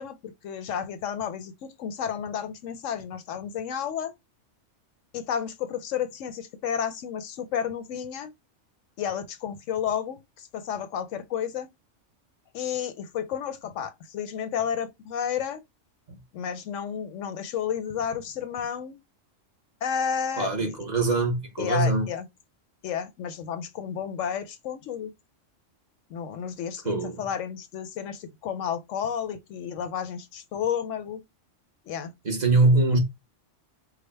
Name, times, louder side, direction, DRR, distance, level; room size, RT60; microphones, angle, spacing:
voice 1, 0.0-4.1 5.1-8.3 9.0-11.7 12.5-15.6 16.3-19.0 19.8-20.8 21.6-22.3 22.8-25.1 26.1-31.2 31.9-32.1, left 8 dB, 85° left, 1.0 m, -31 dB
voice 2, 20.4-22.1 26.8-27.3 32.2-33.0, right 2 dB, 40° right, 0.9 m, -23 dB
4.9 x 2.1 x 3.3 m
omnidirectional pair, 1.3 m